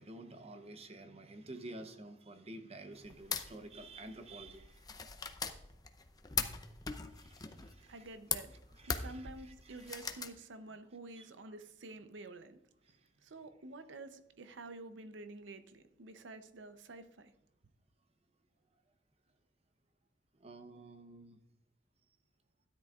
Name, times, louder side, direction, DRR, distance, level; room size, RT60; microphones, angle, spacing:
voice 1, 0.0-5.0 7.1-8.2 8.5-10.0 11.1-11.6 12.8-13.1 20.3-21.4, right 2 dB, 35° right, 0.8 m, -51 dB
sound 1, 3.0-10.3, left 5 dB, 20° left, 0.6 m, -41 dB
voice 2, 7.9-8.6 8.9-12.6 13.2-17.3, right 2 dB, 70° right, 0.7 m, -49 dB
13.0 x 10.5 x 2.4 m
head